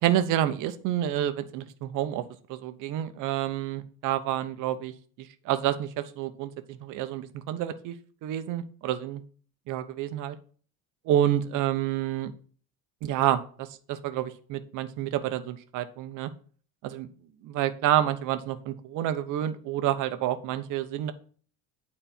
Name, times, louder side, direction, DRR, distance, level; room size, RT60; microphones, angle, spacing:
voice 1, 0.0-8.0 8.2-9.2 9.7-10.4 11.0-12.3 13.0-16.3 16.8-17.1 17.4-21.1, right 12 dB, 60° right, 9 dB, 1.0 m, -29 dB
9.1 x 4.3 x 4.2 m, 0.43 s
cardioid pair, 150°, 34 cm